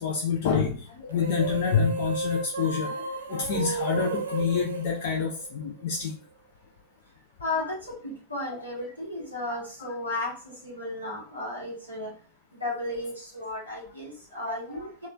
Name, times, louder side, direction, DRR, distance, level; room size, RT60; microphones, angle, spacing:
voice 1, 0.0-6.1 8.5-8.8 9.5-9.6 14.5-14.8, left 6 dB, 50° left, 0 dB, 0.5 m, -28 dB
sound 1, 1.1-5.8, right 4 dB, 70° right, 0.4 m, -33 dB
voice 2, 7.4-12.1 12.5-15.1, left 2 dB, 90° left, -6 dB, 1.2 m, -34 dB
3.0 x 2.3 x 2.2 m, 0.41 s
figure-of-eight pair, 90°, 0 cm